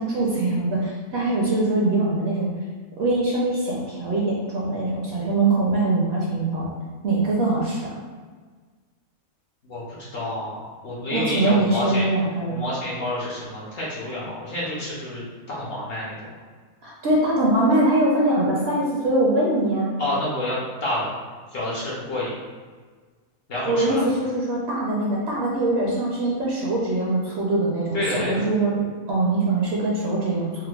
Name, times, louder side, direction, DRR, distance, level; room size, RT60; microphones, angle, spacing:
voice 1, 0.0-2.5 3.0-6.7 7.0-7.9 11.1-12.6 16.8-19.9 23.7-30.7, right 2 dB, 60° right, -4 dB, 0.7 m, -22 dB
voice 2, 10.1-12.1 12.5-16.1 20.0-21.1 21.5-22.3 23.5-24.1 27.9-28.4, left 1 dB, 55° left, -6 dB, 0.8 m, -28 dB
4.4 x 2.1 x 2.3 m, 1.5 s
omnidirectional pair, 1.5 m